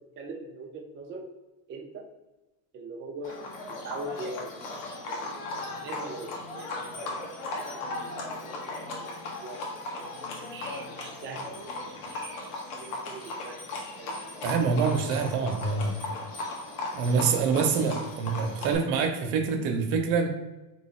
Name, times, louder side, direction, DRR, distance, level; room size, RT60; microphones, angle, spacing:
voice 1, 0.2-1.2 1.7-2.0 2.7-3.4 3.7-4.6 5.1-5.3 5.6-7.0 7.5-8.1 8.4-8.5 8.9-9.6 10.4-11.5 12.1-13.7 14.0-14.1, right 2 dB, 25° right, 2 dB, 0.5 m, -41 dB
Livestock farm animals working animals, 3.2-18.7, left 2 dB, 70° left, 1.1 m, -37 dB
voice 2, 14.4-16.0 16.9-20.3, right 5 dB, 65° right, 4 dB, 0.8 m, -26 dB
3.0 x 2.7 x 4.2 m, 1.1 s
supercardioid pair, 105°, 46 cm